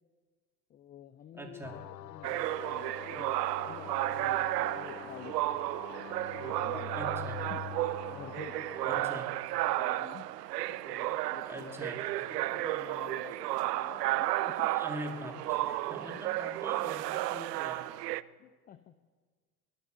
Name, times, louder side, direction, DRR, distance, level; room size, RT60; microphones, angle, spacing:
voice 1, 0.7-5.6 6.3-6.9 7.5-7.6 8.1-9.4 9.7-10.3 10.7-11.8 12.3-14.7 15.3-15.8 16.1-16.2 16.6-16.8 18.4-19.0, left 9 dB, 20° left, 13 dB, 0.4 m, -50 dB
voice 2, 1.3-1.8 7.0-7.4 8.9-9.3 11.5-12.0 14.7-17.9, equal, 5° right, 1 dB, 2.9 m, -43 dB
sound 1, 1.6-9.1, left 10 dB, 90° left, 0.6 m, -45 dB
FX - megafonia estacion de autobuses, 2.2-18.2, right 16 dB, 80° right, 0.6 m, -33 dB
21.0 x 7.4 x 6.8 m, 1.5 s
hypercardioid pair, 85°, 48 cm